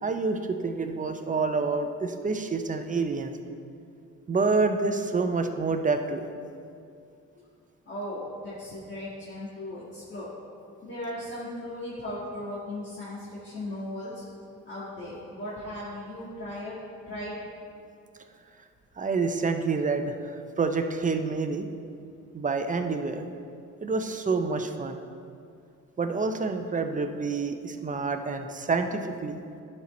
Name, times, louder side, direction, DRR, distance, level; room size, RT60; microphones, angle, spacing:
voice 1, 0.0-3.3 4.3-6.3 19.0-21.7 22.3-23.3 23.8-25.0 26.0-29.4, right 4 dB, 25° right, 7 dB, 0.6 m, -28 dB
voice 2, 7.9-10.3 10.8-14.2 14.7-16.8 17.1-17.4, left 1 dB, 40° left, -9 dB, 2.0 m, -37 dB
11.0 x 4.5 x 4.3 m, 2.4 s
cardioid pair, 90°, 30 cm